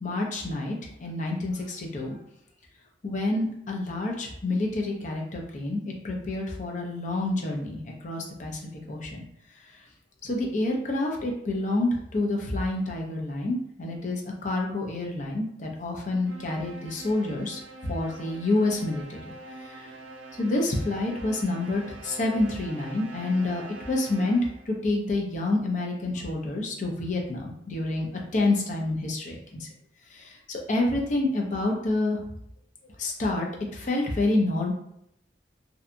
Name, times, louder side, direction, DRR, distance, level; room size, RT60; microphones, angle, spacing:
voice 1, 0.0-2.2 3.0-8.6 8.9-9.2 10.2-19.2 19.6-19.9 20.4-24.4 24.7-28.1 28.3-29.7 30.1-32.2 33.0-34.7, left 2 dB, 40° left, 0 dB, 0.5 m, -28 dB
sound 1, 16.2-24.8, right 2 dB, 90° right, 0.4 m, -44 dB
2.7 x 2.2 x 2.5 m, 0.75 s
head